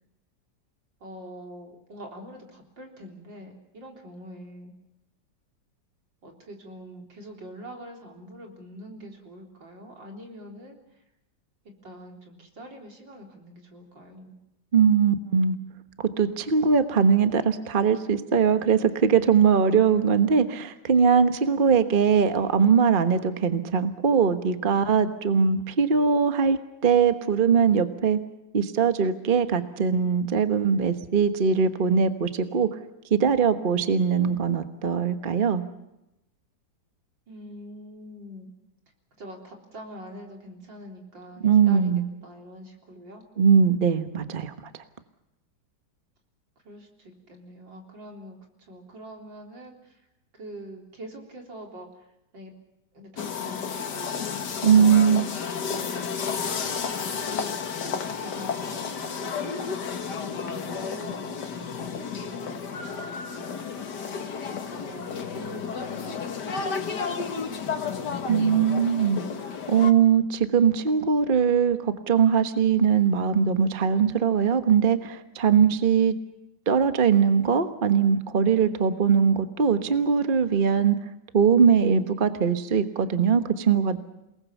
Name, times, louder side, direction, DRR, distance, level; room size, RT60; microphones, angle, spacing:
voice 1, 1.0-4.7 6.2-11.0 11.8-14.3 37.3-38.5 39.2-41.9 42.2-43.3 46.6-50.0 50.3-52.0 52.3-52.5 52.9-54.3 54.7-57.3 58.2-59.8 60.2-63.6 64.7-66.6 66.9-68.0, right 1 dB, 80° right, 1 dB, 4.4 m, -44 dB
voice 2, 14.7-15.6 16.2-28.2 28.5-32.8 33.1-35.6 41.4-42.0 43.4-44.5 54.6-55.3 68.3-69.2 69.7-76.1 76.7-81.0 81.3-84.0, right 6 dB, 30° right, 9 dB, 1.2 m, -21 dB
sound 1, 53.2-69.9, left 6 dB, 65° left, 2.1 m, -32 dB
28.5 x 19.5 x 7.2 m, 0.89 s
omnidirectional pair, 2.0 m